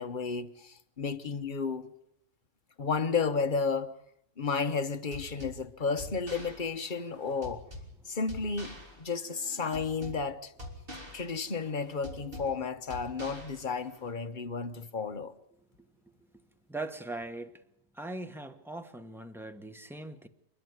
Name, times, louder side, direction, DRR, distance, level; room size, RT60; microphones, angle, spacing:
voice 1, 0.0-1.9 2.8-3.9 4.4-7.6 8.1-10.5 11.1-15.3, left 5 dB, 35° left, 1.2 m, -32 dB
sound 1, 5.1-14.1, left 1 dB, 40° right, 3.7 m, -46 dB
voice 2, 16.7-17.6 17.9-20.3, right 2 dB, ahead, 1.1 m, -40 dB
28.0 x 11.5 x 9.4 m
omnidirectional pair, 1.5 m